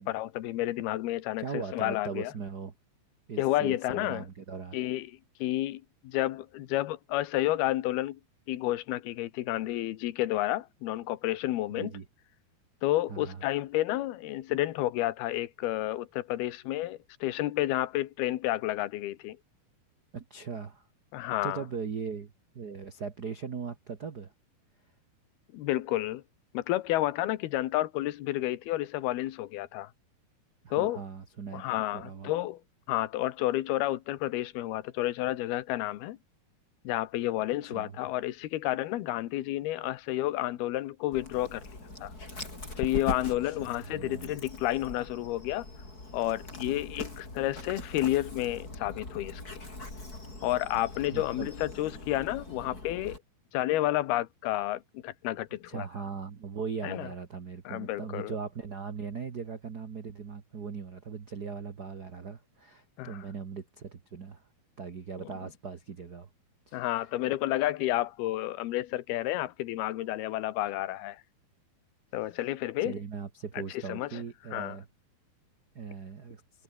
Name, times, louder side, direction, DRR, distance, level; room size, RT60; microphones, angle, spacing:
voice 1, 0.0-2.3 3.4-4.2 4.7-5.1 5.4-8.2 8.5-11.9 12.8-19.4 21.1-21.6 25.5-26.2 26.5-29.9 30.7-31.0 31.5-32.6 32.9-36.2 36.8-41.6 42.0-42.1 42.8-45.7 46.1-49.6 50.4-53.2 53.5-55.9 56.8-57.1 57.7-58.3 63.0-63.2 65.2-65.3 66.7-71.2 72.1-73.0 73.9-74.2 74.5-74.8, left 15 dB, 75° left, 3.1 m, -30 dB
voice 2, 1.4-2.7 3.3-4.8 11.8-12.0 13.1-13.4 20.1-20.9 21.4-24.3 30.6-31.7 31.9-32.3 37.6-38.0 43.4-43.6 43.8-44.4 46.6-46.8 51.1-51.5 55.7-64.4 64.8-66.3 66.7-67.0 72.8-74.9 75.7-76.4, right 6 dB, 85° right, 0.8 m, -39 dB
Dog, 41.1-53.2, left 2 dB, 20° left, 6.6 m, -42 dB
omnidirectional pair, 4.5 m